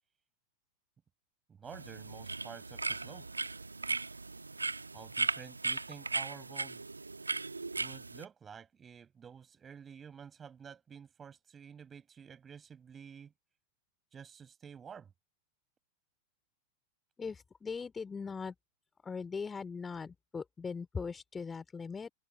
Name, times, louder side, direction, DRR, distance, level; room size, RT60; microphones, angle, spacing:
voice 1, 1.5-3.3 4.9-6.8 7.8-13.3 14.1-15.1, right 7 dB, 20° right, 5.4 m, -50 dB
sound 1, 1.7-8.2, right 3 dB, 80° right, 1.3 m, -37 dB
voice 2, 17.2-18.5 19.0-22.1, left 5 dB, 15° left, 4.5 m, -40 dB
figure-of-eight pair, 90°, 0 cm